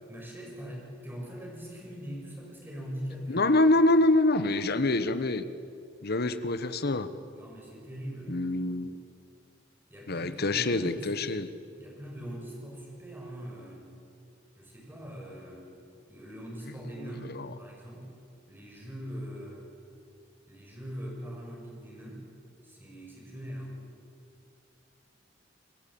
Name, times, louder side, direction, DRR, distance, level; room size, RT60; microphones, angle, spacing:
voice 1, 0.1-3.5 7.3-8.5 9.9-11.1 11.8-13.9 14.6-15.6 16.1-18.1 18.5-19.7 20.5-22.2 22.6-23.8, equal, 10° right, -1 dB, 6.6 m, -41 dB
voice 2, 3.3-5.4 6.0-7.1 8.3-8.9 10.1-11.5 17.0-17.5, left 2 dB, 55° left, 12 dB, 1.2 m, -25 dB
27.5 x 19.5 x 8.6 m, 2.4 s
head